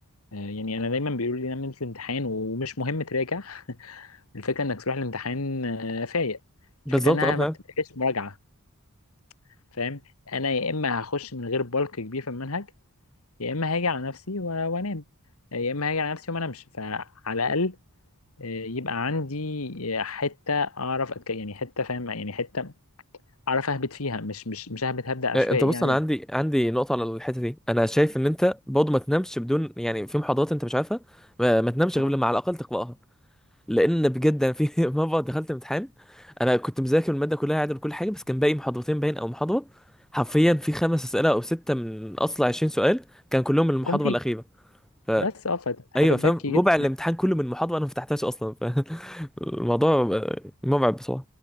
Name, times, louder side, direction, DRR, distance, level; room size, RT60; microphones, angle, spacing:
voice 1, 0.3-6.4 6.9-7.5 7.8-8.4 9.8-10.0 10.3-12.7 13.4-15.0 15.5-17.8 18.4-22.7 23.5-26.0 32.0-32.1 43.9-44.2 45.2-46.6, left 3 dB, 75° left, 1.7 m, -29 dB
voice 2, 6.9-7.5 25.3-31.0 31.4-32.9 33.7-35.9 36.4-39.6 40.1-43.0 43.3-44.4 45.1-45.3 45.9-51.2, equal, ahead, 0.6 m, -24 dB
head